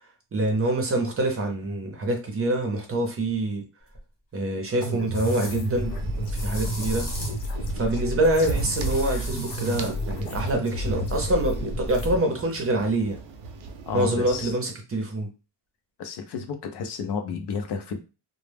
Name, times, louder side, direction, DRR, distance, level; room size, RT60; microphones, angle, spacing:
voice 1, 0.3-3.6 4.3-6.0 6.3-7.1 7.7-13.2 13.9-15.3, right 1 dB, 30° right, 3 dB, 0.6 m, -25 dB
sound 1, 3.9-4.0 5.1-5.5 6.3-7.5 8.5-9.9, equal, 30° left, 0.8 m, -37 dB
sound 2, 4.8-12.2, equal, 90° left, 0.7 m, -31 dB
sound 3, 5.4-14.5, right 4 dB, 75° right, 0.5 m, -38 dB
voice 2, 13.9-14.5 16.0-18.0, left 5 dB, 60° left, 6 dB, 0.5 m, -31 dB
2.1 x 2.0 x 3.3 m, 0.31 s
cardioid pair, 140°, 46 cm